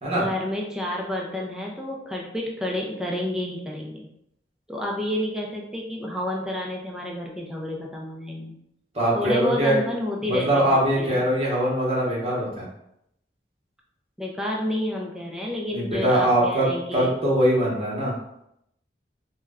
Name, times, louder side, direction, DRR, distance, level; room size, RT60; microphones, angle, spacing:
voice 1, 0.2-4.1 4.7-8.6 9.1-10.6 11.0-11.2 14.2-17.1, left 1 dB, 5° right, -1 dB, 0.3 m, -30 dB
voice 2, 8.9-9.8 10.2-12.7 15.7-16.7 16.9-18.1, right 1 dB, 35° right, -5 dB, 0.8 m, -22 dB
2.2 x 2.0 x 3.5 m, 0.79 s
head